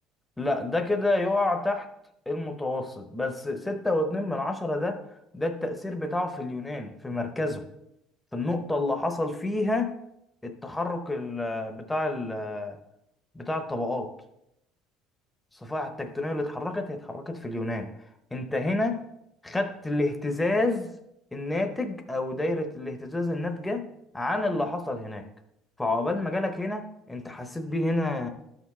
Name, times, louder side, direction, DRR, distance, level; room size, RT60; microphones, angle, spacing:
voice 1, 0.4-1.9 2.3-5.0 5.3-7.6 8.3-10.0 10.4-12.8 13.3-14.1 15.6-17.9 18.3-19.0 19.4-20.9 21.3-23.9 24.1-25.3 25.8-28.3, left 2 dB, 10° left, 5 dB, 0.7 m, -29 dB
12.5 x 5.9 x 3.2 m, 0.82 s
cardioid pair, 145°, 0 cm